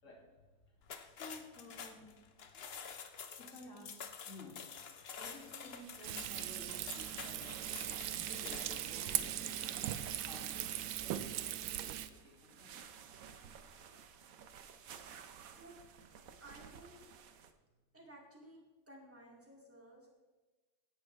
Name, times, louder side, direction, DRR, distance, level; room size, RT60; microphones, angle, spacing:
voice 1, 0.0-2.5 3.4-3.9 4.2-4.6 5.1-7.6 7.9-11.3 11.7-12.7, left 1 dB, 40° left, -2 dB, 2.9 m, -54 dB
sound 1, 0.8-8.9, left 6 dB, 65° left, 0.6 m, -49 dB
sound 2, 5.0-17.5, right 7 dB, 60° right, 1.0 m, -56 dB
Frying (food), 6.0-12.1, right 12 dB, 85° right, 1.4 m, -39 dB
voice 2, 16.4-17.2 17.9-18.6 18.9-20.1, right 1 dB, 5° right, -1 dB, 2.2 m, -56 dB
16.5 x 10.5 x 3.3 m, 1.2 s
omnidirectional pair, 2.1 m